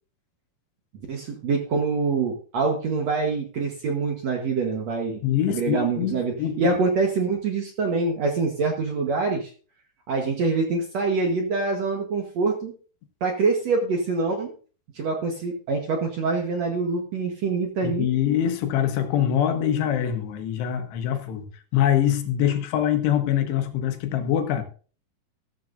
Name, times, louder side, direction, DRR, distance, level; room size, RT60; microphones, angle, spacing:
voice 1, 1.1-5.2 5.5-9.5 10.1-12.7 13.2-14.5 14.9-18.1, right 4 dB, 60° right, 2 dB, 1.8 m, -25 dB
voice 2, 5.2-6.8 17.8-24.6, left 10 dB, 90° left, 7 dB, 3.5 m, -24 dB
14.0 x 13.5 x 2.6 m, 0.39 s
omnidirectional pair, 4.7 m